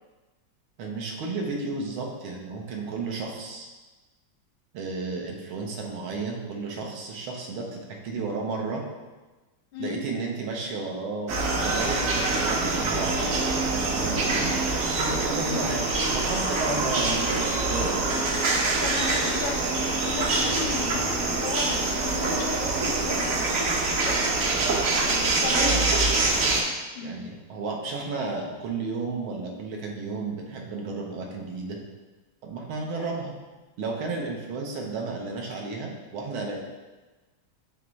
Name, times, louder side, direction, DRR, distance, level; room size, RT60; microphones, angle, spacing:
voice 1, 0.8-3.7 4.7-8.8 9.8-14.5 15.0-15.8 16.1-18.1 25.2-25.8 27.0-31.8 32.4-33.3 33.8-36.6, right 3 dB, 85° right, 0 dB, 1.8 m, -33 dB
sound 1, 11.3-26.6, right 3 dB, 55° right, 0.9 m, -25 dB
voice 2, 18.8-24.3 25.3-26.3 26.9-27.2 33.0-33.1, left 4 dB, 85° left, 2 dB, 1.8 m, -35 dB
9.0 x 3.5 x 3.2 m, 1.2 s
omnidirectional pair, 2.2 m